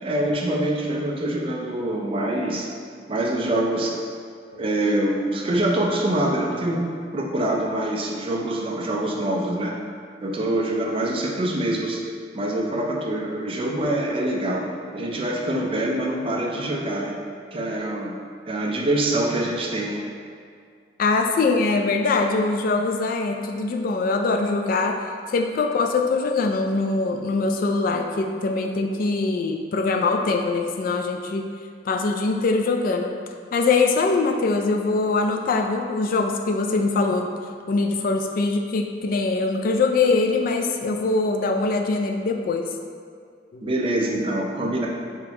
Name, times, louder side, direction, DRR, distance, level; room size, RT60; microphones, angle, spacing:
voice 1, 0.0-2.7 3.1-4.1 4.6-6.8 7.1-9.7 10.2-12.0 12.3-14.7 14.9-17.1 17.5-18.1 18.5-20.0 43.6-44.9, right 1 dB, 30° right, -1 dB, 0.4 m, -25 dB
voice 2, 21.0-25.0 25.3-31.5 31.9-33.2 33.5-42.7 43.5-43.7, left 3 dB, 50° left, 3 dB, 0.3 m, -23 dB
3.5 x 3.5 x 2.9 m, 2.1 s
head